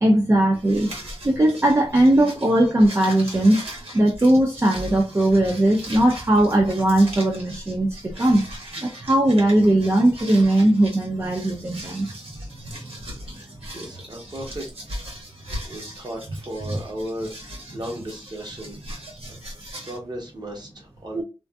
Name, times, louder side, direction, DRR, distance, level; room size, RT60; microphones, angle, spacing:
voice 1, 0.0-0.9 1.2-3.6 3.9-8.4 8.8-12.4 12.6-12.9 16.7-16.8 21.1-21.2, right 1 dB, 25° right, 0.4 m, -19 dB
sound 1, 0.5-20.0, equal, 70° right, 1.2 m, -39 dB
voice 2, 13.7-14.7 15.6-18.8 19.8-21.2, equal, 45° right, 1.0 m, -35 dB
2.5 x 2.4 x 2.2 m
wide cardioid pair, 85°, 10 cm